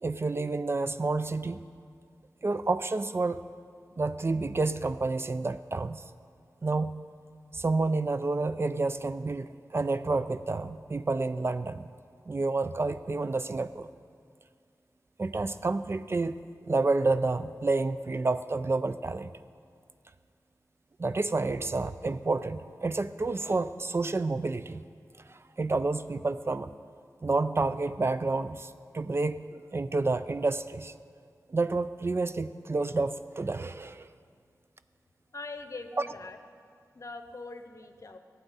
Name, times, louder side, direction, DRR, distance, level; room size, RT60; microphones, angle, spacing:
voice 1, 0.0-1.6 2.4-3.4 4.0-6.0 6.6-7.0 7.5-11.9 12.3-13.9 15.2-16.4 16.6-19.3 21.0-24.8 25.3-26.7 27.2-30.9 31.5-34.1 36.0-36.1, right 3 dB, 40° right, 12 dB, 0.3 m, -29 dB
voice 2, 35.3-36.4 36.9-38.2, left 3 dB, 55° left, 7 dB, 0.7 m, -42 dB
15.0 x 8.2 x 4.0 m, 2.2 s
wide cardioid pair, 80°, 6 cm